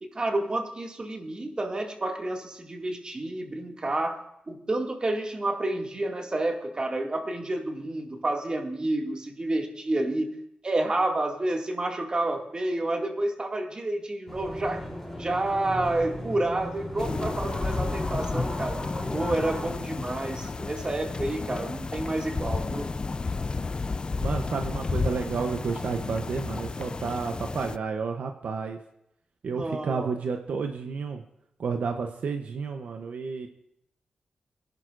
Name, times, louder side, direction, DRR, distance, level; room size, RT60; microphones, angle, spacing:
voice 1, 0.0-4.2 4.5-10.3 10.6-14.8 15.2-18.8 19.1-22.9 29.5-30.1, right 2 dB, 35° right, 2 dB, 2.1 m, -29 dB
sound 1, 14.3-19.7, equal, 5° left, 3.2 m, -37 dB
sound 2, 17.0-27.8, left 3 dB, 35° left, 0.4 m, -32 dB
voice 2, 24.2-28.8 29.4-31.2 31.6-33.5, right 5 dB, 75° right, 5 dB, 0.7 m, -31 dB
23.0 x 11.0 x 2.5 m, 0.79 s
cardioid pair, 70°, 3 cm